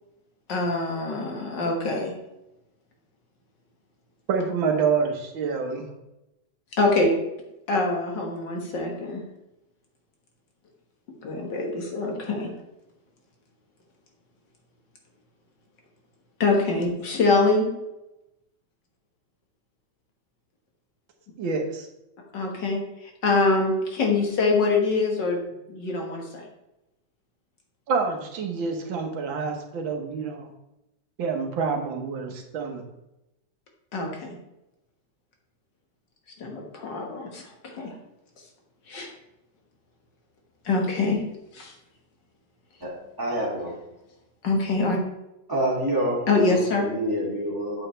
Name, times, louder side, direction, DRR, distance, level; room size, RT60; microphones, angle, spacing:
voice 1, 0.5-2.1 6.8-7.1 7.7-9.2 11.2-12.5 16.4-17.7 22.3-25.4 25.7-26.5 33.9-34.3 36.4-37.9 38.9-39.1 40.7-41.2 41.5-41.7 44.4-45.0 46.3-46.9, left 3 dB, 65° left, 1 dB, 2.2 m, -24 dB
voice 2, 4.3-5.9 21.4-21.9 27.9-30.5 31.2-32.8, right 5 dB, 85° right, 3 dB, 1.9 m, -27 dB
voice 3, 42.8-43.8 45.5-47.9, equal, 10° right, -4 dB, 2.3 m, -27 dB
8.5 x 8.0 x 3.3 m, 0.91 s
omnidirectional pair, 2.1 m